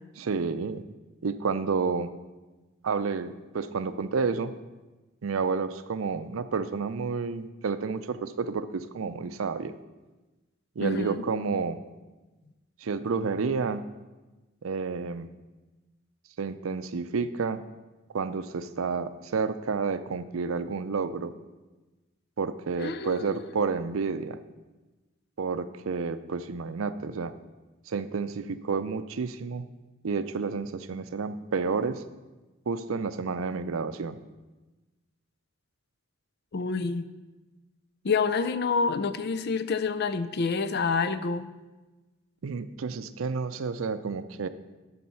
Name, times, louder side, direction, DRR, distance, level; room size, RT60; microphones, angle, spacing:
voice 1, 0.2-0.8 1.2-2.1 2.8-4.5 5.2-9.7 10.8-11.8 12.8-13.8 14.6-15.3 16.4-17.6 18.1-21.3 22.4-24.4 25.4-27.3 27.9-29.7 30.0-32.0 32.7-34.2 42.4-44.5, right 5 dB, 85° right, 12 dB, 0.5 m, -30 dB
voice 2, 10.8-11.2 22.8-23.4 36.5-37.0 38.0-41.5, left 4 dB, 55° left, 12 dB, 0.5 m, -28 dB
12.0 x 4.2 x 5.6 m, 1.2 s
head